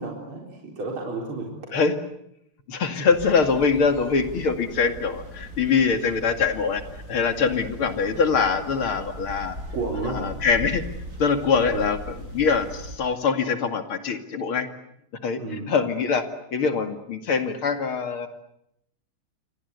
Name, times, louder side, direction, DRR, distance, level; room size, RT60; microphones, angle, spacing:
voice 1, 0.0-1.6 9.7-10.2 11.6-11.8 15.4-15.6, right 3 dB, 70° right, -1 dB, 4.9 m, -31 dB
voice 2, 2.7-6.8 7.1-9.6 10.1-10.8 11.2-14.7 15.2-16.2 16.5-18.3, left 5 dB, 70° left, 7 dB, 3.2 m, -23 dB
sound 1, 3.1-13.0, equal, 35° right, 8.2 m, -39 dB
29.0 x 24.5 x 8.2 m, 0.78 s
omnidirectional pair, 2.4 m